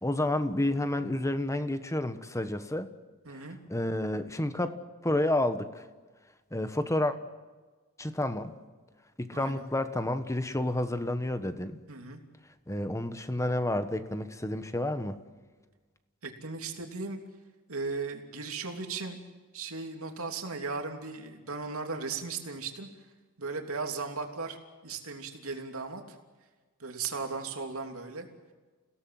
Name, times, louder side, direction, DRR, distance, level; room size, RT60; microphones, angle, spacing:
voice 1, 0.0-2.9 3.7-4.8 5.0-5.8 6.5-7.2 8.0-8.5 9.2-11.8 12.7-15.2, left 1 dB, 15° left, 10 dB, 1.3 m, -30 dB
voice 2, 3.2-3.6 9.3-9.7 11.9-12.2 16.2-17.2 17.7-19.2 19.5-22.9 23.4-24.6 24.8-26.2 26.8-28.3, right 4 dB, 75° right, 4 dB, 3.0 m, -36 dB
29.0 x 17.5 x 7.8 m, 1.3 s
head